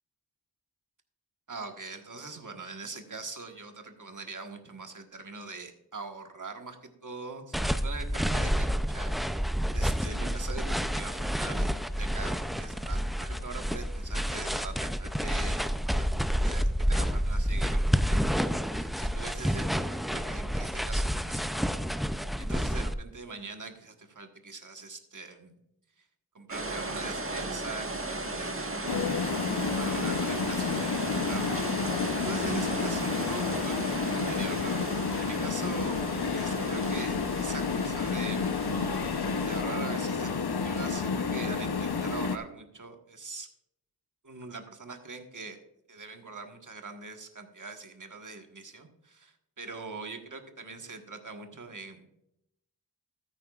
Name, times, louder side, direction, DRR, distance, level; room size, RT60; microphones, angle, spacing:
voice 1, 1.5-16.1 16.4-21.9 22.4-25.5 26.3-29.2 29.6-34.8 35.2-36.0 36.3-38.6 39.4-43.5 44.2-45.6 45.9-52.1, right 3 dB, 50° right, 5 dB, 1.4 m, -42 dB
sound 1, 7.5-22.9, equal, ahead, 0.4 m, -29 dB
sound 2, 26.5-39.6, right 2 dB, 35° right, 1.5 m, -36 dB
sound 3, 28.9-42.4, left 5 dB, 70° left, 0.8 m, -30 dB
14.0 x 9.0 x 2.4 m, 0.80 s
wide cardioid pair, 65°, 40 cm